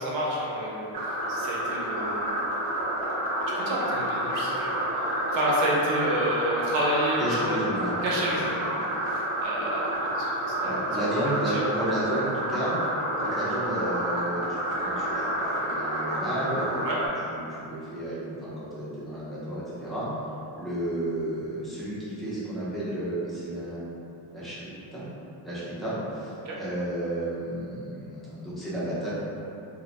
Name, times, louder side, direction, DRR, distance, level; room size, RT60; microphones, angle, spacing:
voice 1, 0.0-2.3 3.5-7.6 8.0-8.8 9.1-11.0 11.5-11.6 16.8-17.0 26.4-26.6, equal, 70° right, -4 dB, 0.7 m, -30 dB
sound 1, 0.9-17.1, right 1 dB, 30° right, 0.7 m, -29 dB
voice 2, 7.2-8.0 10.6-12.8 13.2-16.9 17.3-20.1 20.6-23.8 24.3-25.0 25.4-29.1, right 1 dB, ahead, -10 dB, 0.4 m, -32 dB
2.4 x 2.0 x 2.8 m, 2.7 s
cardioid pair, 155°, 48 cm